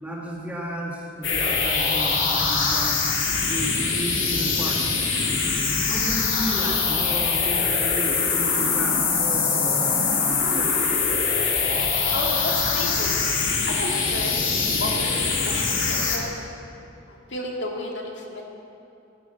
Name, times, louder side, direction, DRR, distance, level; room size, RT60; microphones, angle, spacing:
voice 1, 0.0-3.1 3.5-4.9 5.9-11.2, right 1 dB, 10° right, -2 dB, 1.8 m, -33 dB
sound 1, 1.2-16.2, left 5 dB, 80° left, 2.5 m, -23 dB
voice 2, 12.1-13.1 13.7-14.3 14.8-16.3 17.1-18.4, left 2 dB, 65° left, -1 dB, 2.2 m, -32 dB
15.0 x 12.5 x 6.6 m, 2.8 s
head